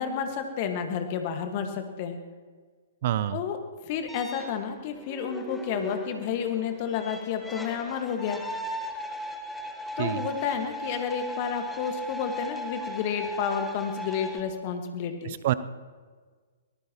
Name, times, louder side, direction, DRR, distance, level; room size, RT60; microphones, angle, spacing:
voice 1, 0.0-2.2 3.3-3.6 3.8-8.4 10.0-15.4, left 7 dB, 40° left, 6 dB, 1.6 m, -30 dB
voice 2, 3.0-3.4 10.0-10.3 15.2-15.5, right 13 dB, 50° right, 16 dB, 0.6 m, -27 dB
sound 1, 4.1-14.4, equal, 5° left, 1.5 m, -38 dB
24.0 x 19.0 x 3.0 m, 1.5 s
figure-of-eight pair, 115°, 0 cm